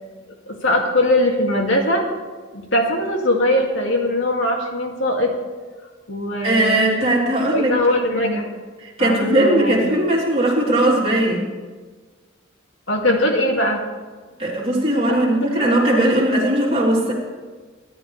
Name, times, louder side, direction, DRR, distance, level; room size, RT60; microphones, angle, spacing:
voice 1, 0.5-2.1 2.5-5.3 6.1-6.8 7.5-8.5 9.0-10.0 12.9-13.8 15.1-15.7, left 1 dB, 70° left, 1 dB, 2.3 m, -21 dB
voice 2, 6.4-7.8 8.1-8.2 8.8-11.4 14.4-17.1, right 1 dB, 30° right, -4 dB, 3.4 m, -19 dB
24.5 x 11.5 x 3.3 m, 1.4 s
head